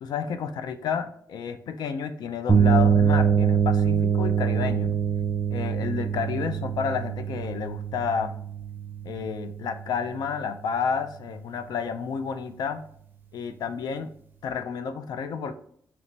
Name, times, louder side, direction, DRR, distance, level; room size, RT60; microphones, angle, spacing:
voice 1, 0.0-4.9 5.5-8.4 9.0-12.8 13.3-14.1 14.4-15.6, left 6 dB, 85° left, 9 dB, 0.4 m, -30 dB
sound 1, 2.5-10.2, right 7 dB, 25° right, 0.4 m, -24 dB
3.2 x 3.0 x 3.9 m, 0.64 s
wide cardioid pair, 135°, 7 cm